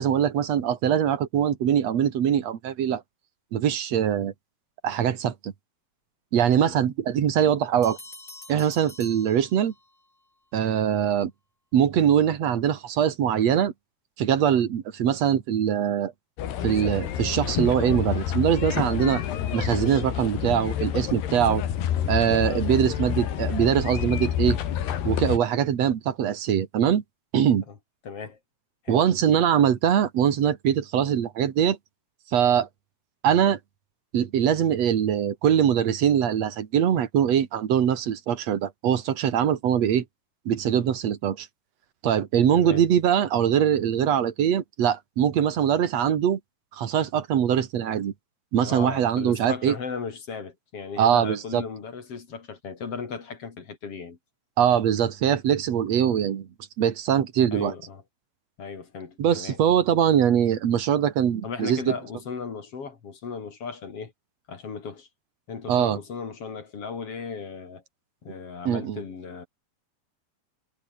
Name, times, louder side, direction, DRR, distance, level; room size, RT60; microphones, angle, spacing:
voice 1, 0.0-3.0 3.5-4.3 4.8-5.5 6.3-8.0 8.5-9.7 10.5-11.3 11.7-13.7 14.2-16.1 16.6-19.2 19.5-21.6 22.1-24.6 25.0-27.0 27.3-27.6 28.9-31.8 32.3-32.7 33.2-33.6 34.1-40.0 40.5-41.5 42.0-46.4 46.7-48.1 48.5-49.7 51.0-51.6 54.6-56.5 56.8-57.7 59.2-61.9 65.7-66.0 68.7-69.0, right 9 dB, 50° right, 2.5 m, -22 dB
sound 1, 7.8-10.1, left 2 dB, 15° left, 7.5 m, -46 dB
sound 2, 16.4-25.4, left 10 dB, 85° left, 4.3 m, -28 dB
voice 2, 28.0-28.4 28.8-29.1 42.6-42.8 48.6-54.2 56.0-56.3 57.5-58.0 58.6-59.6 61.4-64.1 64.5-65.1 65.5-67.8 68.2-69.5, left 5 dB, 40° left, 3.3 m, -36 dB
omnidirectional pair, 4.6 m